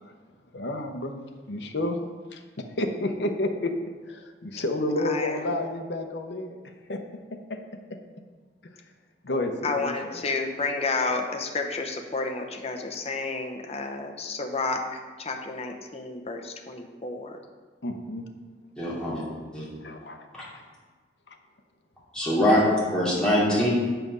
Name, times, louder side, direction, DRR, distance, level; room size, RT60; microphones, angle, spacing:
voice 1, 0.5-1.2 1.5-3.7 4.1-6.6 6.9-7.0 7.3-7.6 9.2-10.1 17.8-18.3 19.8-20.3 21.3-21.4, left 1 dB, 70° left, 4 dB, 0.8 m, -30 dB
voice 2, 5.0-5.5 9.6-17.4, left 3 dB, 35° left, 2 dB, 0.8 m, -31 dB
voice 3, 18.8-19.2 19.5-19.6 20.3-20.4 22.1-22.6 22.9-23.7, equal, 5° left, -9 dB, 2.7 m, -23 dB
7.4 x 5.7 x 5.4 m, 1.4 s
head